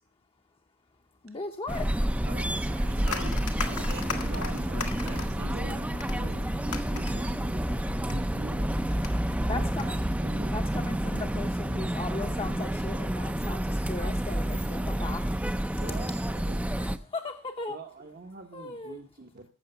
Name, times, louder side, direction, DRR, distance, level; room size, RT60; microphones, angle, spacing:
voice 1, 1.2-1.8 9.4-10.0 10.5-15.2 16.8-16.9 17.1-17.8 18.5-19.0, left 3 dB, 25° left, 4 dB, 0.7 m, -37 dB
sound 1, 1.7-17.0, right 1 dB, 5° right, 0.4 m, -29 dB
voice 2, 2.2-3.0 4.1-7.6 8.0-8.8 9.4-9.6 10.2-10.5 15.8-16.6 17.7-19.5, right 3 dB, 45° right, 3 dB, 0.9 m, -45 dB
voice 3, 2.8-6.3, right 1 dB, 60° right, 8 dB, 1.7 m, -43 dB
sound 2, 2.9-10.2, left 3 dB, 85° left, 1.6 m, -38 dB
14.5 x 6.3 x 6.8 m, 0.42 s
head